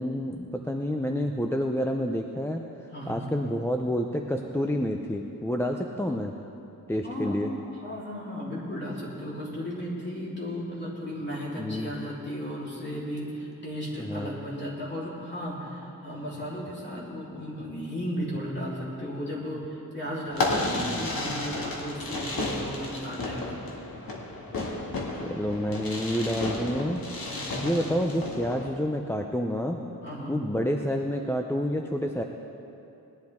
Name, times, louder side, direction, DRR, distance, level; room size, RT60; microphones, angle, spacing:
voice 1, 0.0-2.6 3.1-6.3 6.9-7.5 11.6-11.9 14.0-14.4 20.8-20.9 25.1-27.0 27.6-29.8 30.3-32.2, equal, 5° left, 3 dB, 0.5 m, -29 dB
voice 2, 2.9-3.3 7.0-7.4 7.8-23.6 27.3-27.7 30.0-30.4, equal, 30° left, -7 dB, 3.5 m, -35 dB
Fireworks, 20.3-28.7, left 2 dB, 80° left, 2.0 m, -32 dB
19.5 x 11.5 x 3.6 m, 2.8 s
wide cardioid pair, 135°, 35 cm